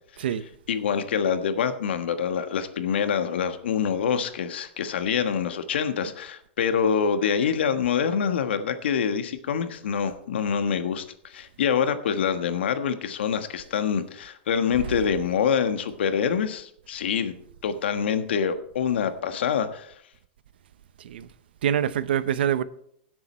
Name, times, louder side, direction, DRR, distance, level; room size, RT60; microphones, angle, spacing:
voice 1, 0.7-19.9, left 7 dB, 90° left, 1.4 m, -26 dB
voice 2, 21.6-22.6, right 9 dB, 70° right, 0.7 m, -25 dB
17.0 x 7.8 x 4.4 m
supercardioid pair, 180°, 6 cm